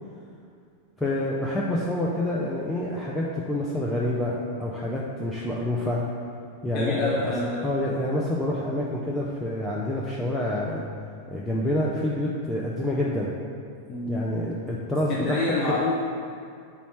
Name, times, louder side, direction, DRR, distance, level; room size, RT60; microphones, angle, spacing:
voice 1, 1.0-6.0 6.6-7.3 7.6-10.8 11.3-13.3 14.1-15.8, left 1 dB, 5° left, -5 dB, 0.5 m, -27 dB
voice 2, 6.7-7.6 13.9-14.4 15.1-15.9, left 3 dB, 40° left, -5 dB, 0.7 m, -27 dB
4.2 x 4.2 x 5.6 m, 2.3 s
figure-of-eight pair, 90°, 0 cm